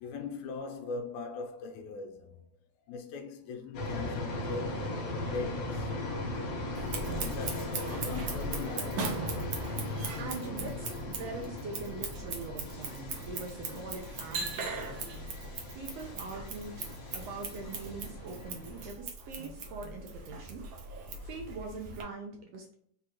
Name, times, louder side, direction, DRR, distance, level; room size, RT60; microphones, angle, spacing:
voice 1, 0.0-2.4 2.9-5.9 7.2-9.5 19.0-19.1 21.1-21.3, left 4 dB, 80° left, 2.2 m, -41 dB
sound 1, 3.7-18.9, left 1 dB, 60° left, 2.1 m, -38 dB
Scissors, 6.7-22.0, right 4 dB, 90° right, 1.0 m, -40 dB
voice 2, 10.1-15.0 15.7-20.6 20.9-22.7, right 3 dB, 75° right, 1.5 m, -43 dB
5.0 x 3.4 x 2.9 m
omnidirectional pair, 3.4 m